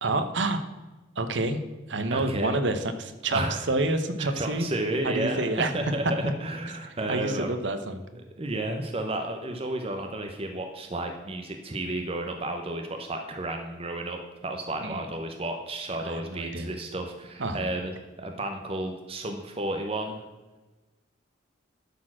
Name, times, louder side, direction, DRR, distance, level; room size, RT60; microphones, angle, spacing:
voice 1, 0.0-0.6 1.2-1.6 1.9-4.7 5.0-5.7 6.2-6.3 7.1-8.2 14.8-15.0 16.0-16.7 17.4-17.7, right 2 dB, 65° right, 9 dB, 0.9 m, -28 dB
voice 2, 2.1-2.5 3.3-3.6 4.2-7.6 8.4-20.2, right 1 dB, 30° right, 4 dB, 0.8 m, -32 dB
11.5 x 4.4 x 6.0 m, 1.1 s
head